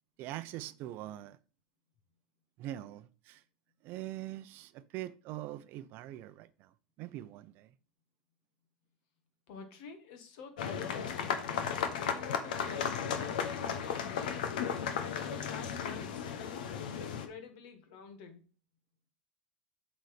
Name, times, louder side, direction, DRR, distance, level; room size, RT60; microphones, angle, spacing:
voice 1, 0.2-1.4 2.6-3.4 3.8-7.7, right 14 dB, 50° right, 0.6 m, -43 dB
voice 2, 9.5-11.2 11.7-14.5 14.8-18.4, left 6 dB, 65° left, 1.7 m, -49 dB
sound 1, 10.6-17.3, left 7 dB, 85° left, 1.1 m, -35 dB
7.7 x 4.0 x 5.0 m
supercardioid pair, 125°, 4 cm